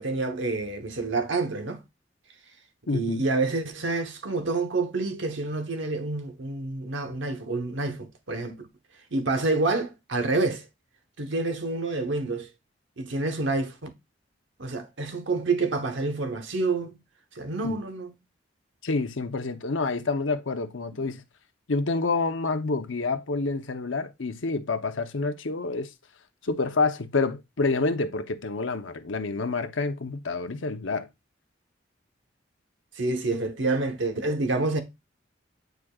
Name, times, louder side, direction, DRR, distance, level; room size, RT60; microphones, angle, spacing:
voice 1, 0.0-1.8 2.9-8.7 9.1-10.6 11.2-12.5 13.0-13.9 14.6-17.0 17.3-18.2 20.9-21.1 33.0-34.8, right 3 dB, 75° right, 1.1 m, -28 dB
voice 2, 2.9-3.2 17.6-17.8 18.8-21.2 21.7-25.9 26.4-31.1, left 3 dB, 85° left, 0.8 m, -28 dB
9.3 x 4.8 x 2.4 m
head